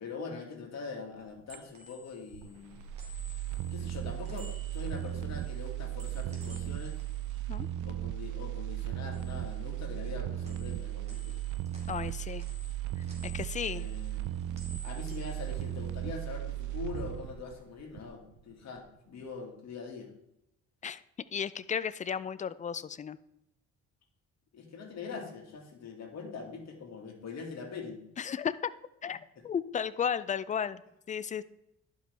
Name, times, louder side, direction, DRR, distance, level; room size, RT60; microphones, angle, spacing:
voice 1, 0.0-2.8 3.7-7.0 7.8-11.4 13.7-14.3 14.8-20.1 24.5-28.0 29.4-29.5, left 5 dB, 60° left, 1 dB, 2.0 m, -43 dB
sound 1, 1.2-8.5 8.8-10.2 10.4-16.4 16.8-18.1, right 1 dB, 20° right, 2.3 m, -55 dB
sound 2, 2.3-18.4 18.8-18.9, right 14 dB, 80° right, 0.5 m, -36 dB
voice 2, 11.9-12.4 13.2-13.9 20.8-21.0 21.3-23.2 28.2-28.7 29.0-29.2 29.4-30.8 31.1-31.4, left 7 dB, 25° left, 16 dB, 0.4 m, -34 dB
11.5 x 5.1 x 3.3 m, 0.83 s
cardioid pair, 90°, 30 cm